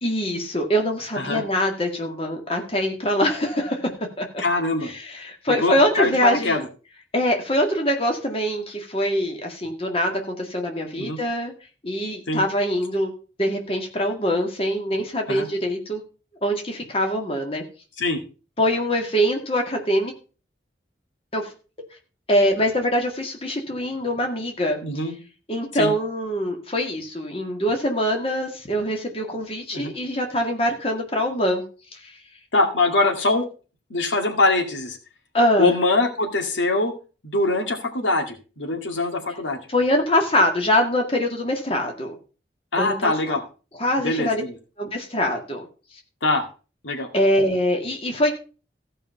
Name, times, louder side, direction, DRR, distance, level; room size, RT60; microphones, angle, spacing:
voice 1, 0.0-3.8 4.2-4.3 4.8-6.6 7.1-11.5 11.8-13.1 13.4-16.0 16.4-17.6 18.6-20.1 21.3-21.5 22.3-24.8 25.5-31.6 35.3-35.7 39.7-42.2 42.7-43.4 43.8-44.4 44.8-45.6 47.1-48.3, equal, 30° left, 2 dB, 2.0 m, -23 dB
voice 2, 4.4-4.9 5.5-6.7 11.0-11.2 12.3-12.4 15.3-15.5 18.0-18.2 24.8-25.1 25.7-25.9 29.7-30.0 32.5-33.5 33.9-35.0 35.6-36.9 37.2-39.6 42.7-43.4 44.0-44.5 46.2-46.5 46.8-47.1, left 2 dB, 90° left, 4 dB, 2.1 m, -23 dB
15.5 x 5.5 x 5.5 m, 0.35 s
head